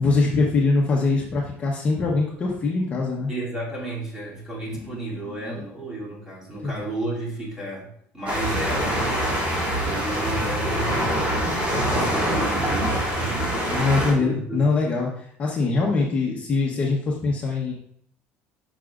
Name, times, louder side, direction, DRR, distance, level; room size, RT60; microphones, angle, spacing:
voice 1, 0.0-3.3 4.8-5.6 6.6-6.8 13.7-17.7, left 3 dB, 30° left, -2 dB, 1.0 m, -23 dB
voice 2, 3.3-9.2 9.8-13.5 14.0-14.7, right 1 dB, 10° right, -5 dB, 2.9 m, -33 dB
sound 1, 8.3-14.1, right 1 dB, 25° right, 2.9 m, -24 dB
10.0 x 6.0 x 2.5 m, 0.68 s
cardioid pair, 150°, 5 cm